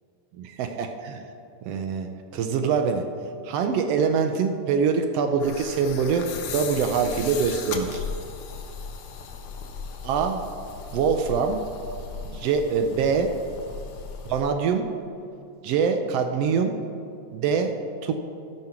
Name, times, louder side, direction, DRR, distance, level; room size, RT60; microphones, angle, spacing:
voice 1, 0.4-1.2 1.7-3.1 3.4-8.0 10.0-10.4 10.9-11.6 12.2-13.4 14.3-14.9 15.6-16.8 17.3-17.8 18.0-18.1, right 6 dB, 75° right, 6 dB, 1.4 m, -24 dB
sound 1, 5.4-14.4, left 6 dB, 70° left, 1.3 m, -37 dB
14.0 x 5.7 x 5.9 m, 2.5 s
omnidirectional pair, 3.3 m